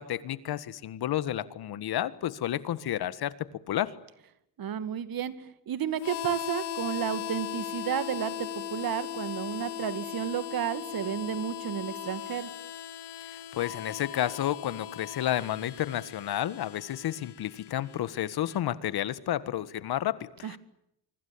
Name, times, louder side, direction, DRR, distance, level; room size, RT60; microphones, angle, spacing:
voice 1, 0.0-3.3 3.7-3.9 13.5-20.6, left 12 dB, 65° left, 16 dB, 1.7 m, -31 dB
voice 2, 4.6-12.5 20.4-20.6, right 9 dB, 60° right, 13 dB, 2.3 m, -32 dB
Harmonica, 6.0-18.6, left 11 dB, 85° left, 2.1 m, -39 dB
26.0 x 25.0 x 8.6 m, 0.78 s
cardioid pair, 105°, 40 cm